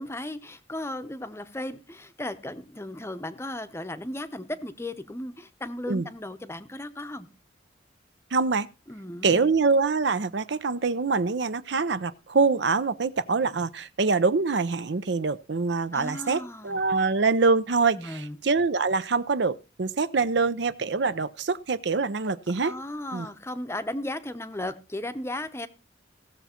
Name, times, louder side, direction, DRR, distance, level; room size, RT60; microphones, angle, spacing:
voice 1, 0.0-7.3 8.9-9.5 15.9-16.8 17.9-18.4 22.5-25.7, left 1 dB, 15° left, 0.7 m, -35 dB
voice 2, 8.3-8.7 9.2-22.7 23.1-23.3, right 4 dB, 65° right, 0.6 m, -25 dB
17.0 x 7.0 x 4.3 m
head